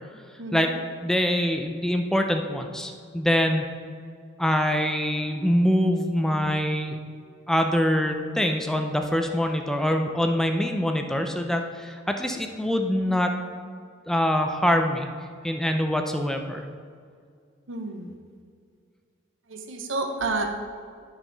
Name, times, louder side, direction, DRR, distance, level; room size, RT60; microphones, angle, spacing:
voice 1, 0.4-0.7 17.7-18.1 19.5-20.5, right 3 dB, 90° right, 4 dB, 0.9 m, -30 dB
voice 2, 1.0-3.6 4.4-7.0 7.5-13.3 14.1-15.1 15.4-16.6, equal, 5° left, 4 dB, 0.4 m, -24 dB
9.0 x 5.7 x 4.0 m, 2.2 s
head